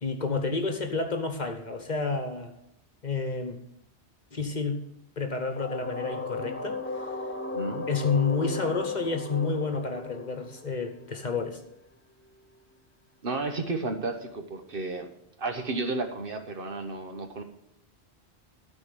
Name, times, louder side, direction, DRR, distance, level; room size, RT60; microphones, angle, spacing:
voice 1, 0.0-2.5 3.0-3.6 4.3-4.8 5.2-7.1 7.9-11.6, left 4 dB, 45° left, 6 dB, 1.1 m, -30 dB
sound 1, 5.6-11.3, left 3 dB, 15° left, 0.7 m, -35 dB
voice 2, 7.5-7.9 13.2-15.1 15.4-17.4, right 3 dB, 55° right, 6 dB, 1.3 m, -32 dB
13.0 x 4.7 x 8.3 m, 0.81 s
omnidirectional pair, 1.1 m